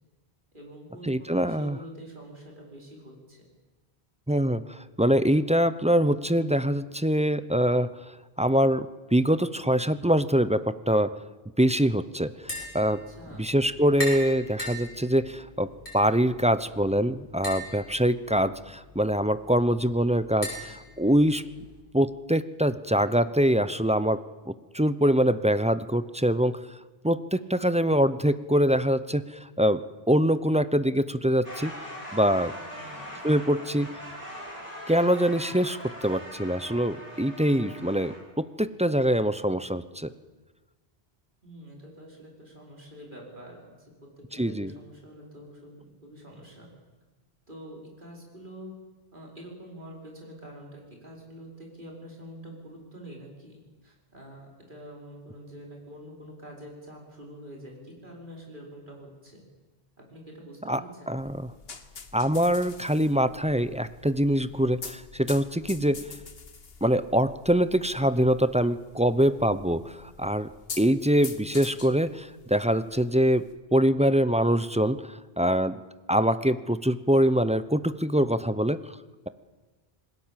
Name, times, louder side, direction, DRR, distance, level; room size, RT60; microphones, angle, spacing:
voice 1, 0.5-3.4 12.9-13.5 32.6-33.6 41.4-46.7 47.5-48.7 49.1-59.4 60.0-61.2, equal, 50° right, -1 dB, 5.4 m, -46 dB
voice 2, 1.1-1.8 4.3-7.9 8.4-11.1 11.6-13.0 13.4-21.4 21.9-26.6 27.0-31.7 32.1-32.5 33.2-33.9 34.9-40.1 44.4-44.7 60.7-60.8 61.1-61.3 62.1-66.1 66.8-70.5 70.8-75.7 76.1-79.0, equal, 10° right, 13 dB, 0.5 m, -24 dB
Tap, 12.3-21.8, left 1 dB, 90° left, 6.4 m, -41 dB
sound 1, 31.4-38.2, equal, 35° left, 6.4 m, -41 dB
sound 2, 61.2-73.6, left 5 dB, 65° left, 1.6 m, -45 dB
27.0 x 20.0 x 7.5 m, 1.2 s
omnidirectional pair, 1.1 m